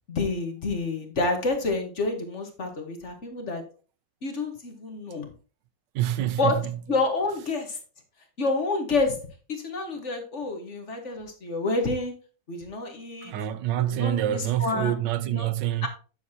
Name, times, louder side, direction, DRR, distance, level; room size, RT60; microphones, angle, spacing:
voice 1, 0.1-3.6 4.2-5.3 6.4-6.6 6.9-7.8 8.4-9.2 9.5-12.1 12.5-13.3 13.9-14.9 15.2-15.5 15.8-15.9, left 3 dB, 45° left, 1.6 m, -28 dB
voice 2, 5.9-6.7 13.2-15.9, right 12 dB, 80° right, 1.3 m, -26 dB
9.6 x 7.0 x 2.8 m
omnidirectional pair, 1.9 m